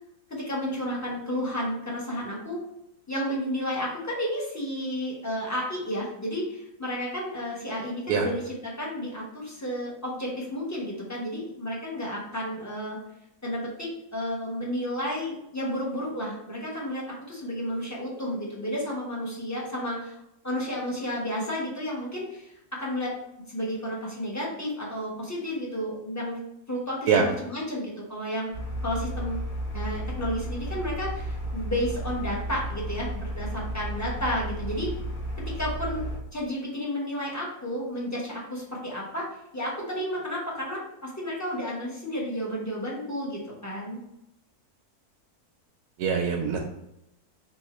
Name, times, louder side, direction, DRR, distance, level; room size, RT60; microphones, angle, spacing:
voice 1, 0.3-2.6 3.1-13.0 13.4-20.2 20.4-22.5 22.8-23.1 23.5-26.4 26.7-28.5 28.8-29.4 29.7-34.9 35.4-39.2 39.5-44.0, equal, 10° left, -4 dB, 1.0 m, -32 dB
sound 1, 28.5-36.2, right 1 dB, 65° left, 1.5 m, -33 dB
voice 2, 46.0-46.6, right 6 dB, 90° right, 1 dB, 1.1 m, -23 dB
3.8 x 3.1 x 4.2 m, 0.83 s
omnidirectional pair, 1.6 m